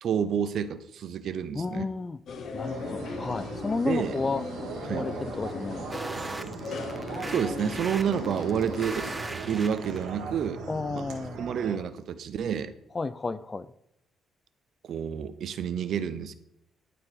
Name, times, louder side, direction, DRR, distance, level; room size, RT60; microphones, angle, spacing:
voice 1, 0.0-1.9 3.8-4.1 4.9-5.1 7.3-9.1 9.5-10.6 11.4-12.7 14.9-16.3, right 8 dB, 65° right, 0.6 m, -29 dB
voice 2, 1.5-2.2 2.5-4.4 4.9-5.9 10.7-11.5 12.9-13.7, left 3 dB, 30° left, 0.4 m, -32 dB
sound 1, 2.3-9.2, left 4 dB, 60° left, 0.8 m, -38 dB
sound 2, 2.6-11.7, right 5 dB, 90° right, 1.6 m, -39 dB
sound 3, 5.9-10.1, right 2 dB, 15° right, 0.6 m, -38 dB
12.0 x 4.6 x 4.1 m
cardioid pair, 90°, 0 cm